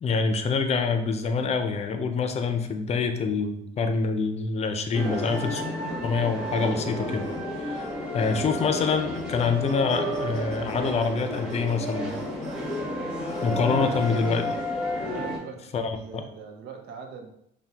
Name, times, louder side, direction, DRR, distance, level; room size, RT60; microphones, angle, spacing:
voice 1, 0.0-5.6 6.0-7.2 7.6-7.9 8.1-12.1 13.4-14.4 15.7-16.2, left 4 dB, 40° left, 6 dB, 0.5 m, -26 dB
sound 1, 4.9-15.4, left 1 dB, 5° right, 1.4 m, -31 dB
sound 2, 5.1-5.6 6.4-6.8 7.2-7.5 7.7-12.8 13.3-14.7, right 3 dB, 45° right, 1.0 m, -50 dB
voice 2, 13.6-14.0 15.0-17.3, right 6 dB, 80° right, 4 dB, 0.7 m, -41 dB
5.7 x 2.2 x 2.8 m, 0.76 s
cardioid pair, 110°, 17 cm